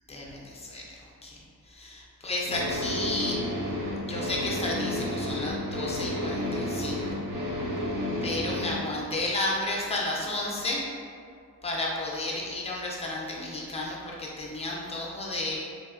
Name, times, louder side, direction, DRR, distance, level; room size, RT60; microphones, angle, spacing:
voice 1, 0.1-0.8 1.2-1.4 1.7-3.4 4.0-7.2 8.2-10.8 11.6-15.6, left 2 dB, 20° left, -3 dB, 0.5 m, -32 dB
sound 1, 2.4-8.8, left 1 dB, 65° right, 0.7 m, -31 dB
3.2 x 2.6 x 2.4 m, 2.2 s
wide cardioid pair, 120°, 36 cm